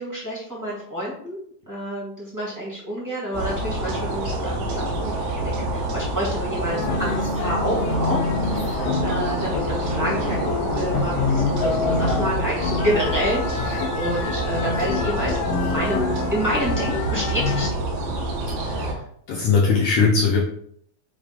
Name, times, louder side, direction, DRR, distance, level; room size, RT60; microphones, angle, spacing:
voice 1, 0.0-1.4 1.6-17.7, equal, 10° right, -6 dB, 0.9 m, -29 dB
sound 1, 3.3-18.9, right 2 dB, 80° right, 3.5 m, -27 dB
sound 2, 6.7-17.7, left 5 dB, 90° left, 2.7 m, -27 dB
voice 2, 19.3-20.4, left 5 dB, 70° left, -3 dB, 2.0 m, -19 dB
7.0 x 2.7 x 5.3 m, 0.64 s
omnidirectional pair, 4.7 m